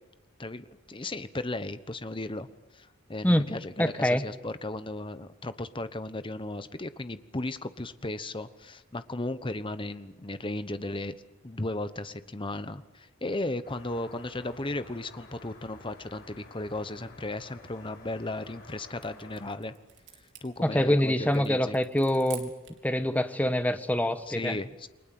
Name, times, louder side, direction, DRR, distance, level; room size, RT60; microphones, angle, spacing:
voice 1, 0.4-11.1 11.4-19.7 20.4-21.8 24.3-24.9, left 2 dB, 25° left, 12 dB, 1.1 m, -35 dB
voice 2, 3.8-4.2 20.6-22.5 22.8-24.6, left 1 dB, 10° left, 9 dB, 1.2 m, -25 dB
sound 1, 13.6-19.5, left 2 dB, 50° left, 7.8 m, -51 dB
sound 2, 18.2-22.9, right 10 dB, 60° right, 3.7 m, -49 dB
29.5 x 22.5 x 7.7 m, 1.0 s
head